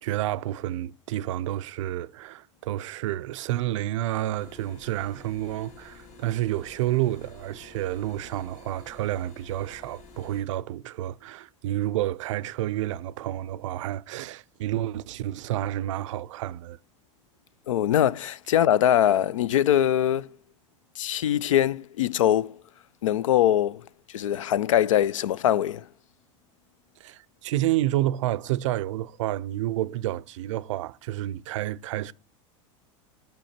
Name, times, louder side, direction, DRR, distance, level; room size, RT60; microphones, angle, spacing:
voice 1, 0.0-16.8 27.0-32.1, right 14 dB, 80° right, 0.4 m, -29 dB
sound 1, 4.4-10.4, left 4 dB, 50° left, 2.2 m, -50 dB
voice 2, 17.7-20.3 21.0-22.6 23.0-23.9 24.1-25.9, left 11 dB, 90° left, 0.4 m, -22 dB
8.8 x 5.5 x 4.3 m
hypercardioid pair, 100°, 16 cm